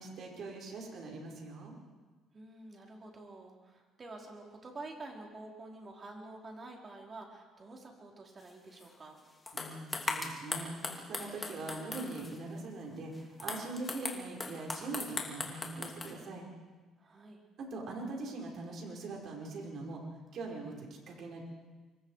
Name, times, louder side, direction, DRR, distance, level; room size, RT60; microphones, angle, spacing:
voice 1, 0.0-1.7 9.5-16.5 17.6-20.0 20.3-21.4, right 3 dB, 55° right, 0 dB, 5.2 m, -42 dB
voice 2, 2.3-9.2 17.0-17.4, right 2 dB, 30° right, 0 dB, 4.4 m, -48 dB
sound 1, 8.8-8.9 9.5-12.4 13.1-16.1, left 3 dB, 20° left, 2.8 m, -39 dB
26.0 x 23.5 x 5.0 m, 1.3 s
cardioid pair, 110°, 0 cm